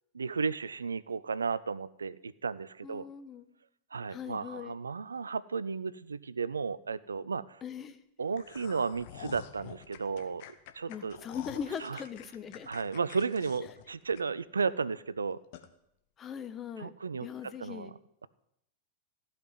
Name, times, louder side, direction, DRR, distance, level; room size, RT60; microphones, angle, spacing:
voice 1, 0.1-3.1 3.9-7.6 8.2-10.4 10.8-11.2 11.8-12.0 12.7-15.4 16.8-17.9, right 5 dB, 75° right, 19 dB, 0.4 m, -34 dB
voice 2, 2.8-3.5 4.1-4.7 7.6-8.0 10.9-12.7 16.2-16.9 17.2-17.9, left 7 dB, 25° left, 10 dB, 1.1 m, -40 dB
sound 1, 8.3-14.6 15.0-15.1 15.5-15.7, left 10 dB, 50° left, 1.2 m, -48 dB
15.0 x 5.8 x 9.6 m, 0.78 s
figure-of-eight pair, 90°, 0 cm